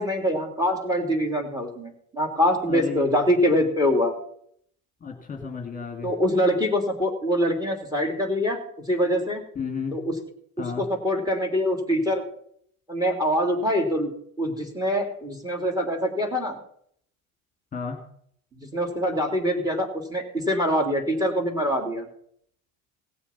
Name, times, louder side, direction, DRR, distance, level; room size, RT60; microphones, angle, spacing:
voice 1, 0.0-4.1 6.0-8.6 8.9-9.4 9.9-10.1 10.6-12.2 12.9-14.1 14.4-16.6 18.7-22.1, equal, 10° right, 3 dB, 3.1 m, -24 dB
voice 2, 2.7-3.1 5.0-6.1 9.6-10.0 10.6-10.8 17.7-18.0, left 5 dB, 20° left, 3 dB, 2.5 m, -32 dB
17.5 x 7.0 x 5.8 m, 0.66 s
hypercardioid pair, 85°, 42 cm